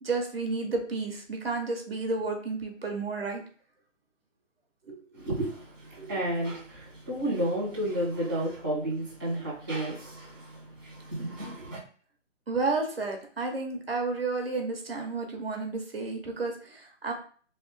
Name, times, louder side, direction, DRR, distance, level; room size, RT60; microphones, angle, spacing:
voice 1, 0.0-3.4 4.9-5.0 6.0-6.2 12.5-17.1, right 3 dB, 50° right, 2 dB, 0.9 m, -31 dB
voice 2, 5.1-11.8, right 1 dB, 15° right, -7 dB, 0.8 m, -32 dB
3.1 x 2.7 x 3.3 m, 0.44 s
hypercardioid pair, 175°, 37 cm